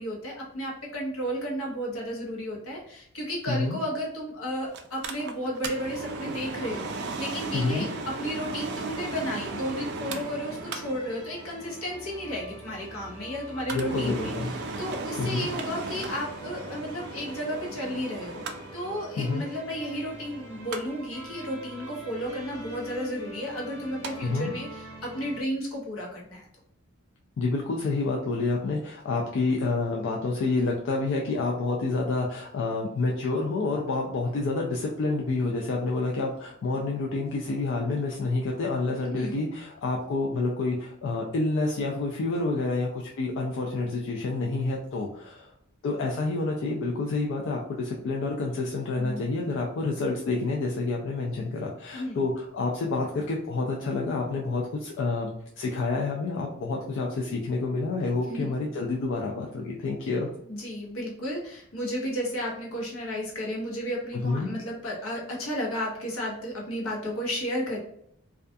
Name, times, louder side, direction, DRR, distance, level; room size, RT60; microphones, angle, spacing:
voice 1, 0.0-7.9 8.2-26.4 39.1-39.4 49.0-49.2 51.9-52.2 58.3-58.5 60.4-67.8, equal, 85° left, -2 dB, 0.8 m, -33 dB
voice 2, 3.5-3.8 7.5-7.9 13.7-14.5 15.2-15.5 19.2-19.4 24.2-24.5 27.4-45.5 45.8-55.3 55.6-60.3 64.2-64.5, left 3 dB, 60° left, -1 dB, 0.3 m, -28 dB
Mechanical fan, 4.7-24.1 24.5-24.6, right 3 dB, 55° right, 0.3 m, -38 dB
sound 1, 5.6-25.4, right 1 dB, 20° left, 0.8 m, -45 dB
2.4 x 2.2 x 2.5 m, 0.71 s
head